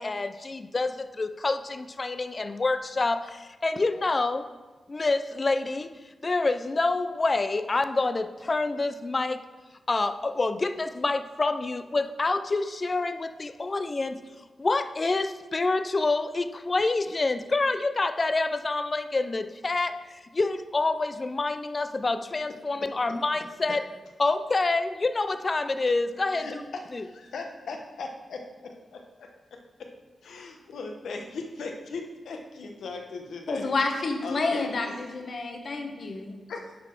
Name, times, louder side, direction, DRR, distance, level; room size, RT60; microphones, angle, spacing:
voice 1, 0.0-4.5 4.9-5.9 6.2-9.4 9.9-23.8 24.2-26.6 26.9-27.0, left 3 dB, 30° left, 10 dB, 0.4 m, -27 dB
voice 2, 26.3-29.9 30.2-33.7 34.2-35.0 36.5-36.8, left 3 dB, 85° left, 3 dB, 0.9 m, -39 dB
voice 3, 33.5-36.4, left 3 dB, 45° left, 3 dB, 1.0 m, -29 dB
10.5 x 4.0 x 4.4 m, 1.2 s
wide cardioid pair, 145°, 0 cm